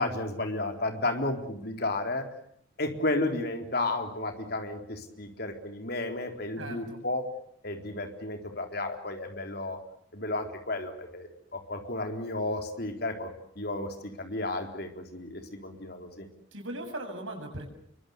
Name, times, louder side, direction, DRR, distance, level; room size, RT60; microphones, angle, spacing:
voice 1, 0.0-2.2 2.8-7.2 7.6-9.8 10.1-13.3 13.6-16.3, left 2 dB, 55° left, 5 dB, 4.0 m, -32 dB
voice 2, 6.6-7.0 16.5-17.7, right 1 dB, 90° right, 4 dB, 7.5 m, -38 dB
28.0 x 23.5 x 8.2 m, 0.67 s
head